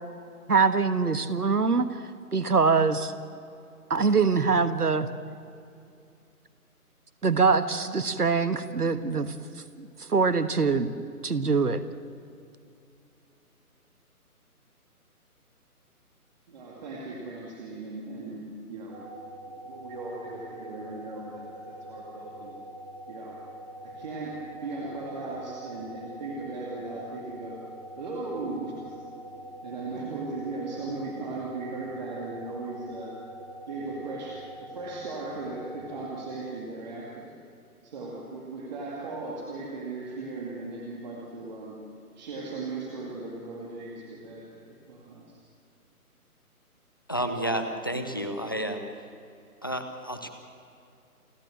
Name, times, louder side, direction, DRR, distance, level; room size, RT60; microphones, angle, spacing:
voice 1, 0.5-1.9 2.3-3.1 3.9-5.1 7.2-9.3 9.8-10.9 11.2-11.8, right 4 dB, 80° right, 12 dB, 1.5 m, -23 dB
voice 2, 16.5-19.0 19.5-22.6 23.1-23.4 23.8-27.6 28.0-29.0 29.6-33.2 33.7-37.3 37.8-41.8 42.2-45.4, right 3 dB, 30° right, -2 dB, 2.4 m, -37 dB
sound 1, 18.9-36.4, right 1 dB, 10° right, 1.5 m, -44 dB
voice 3, 47.1-48.9 49.6-50.3, equal, 15° left, 6 dB, 0.6 m, -31 dB
28.5 x 12.0 x 7.7 m, 2.5 s
figure-of-eight pair, 145°, 45 cm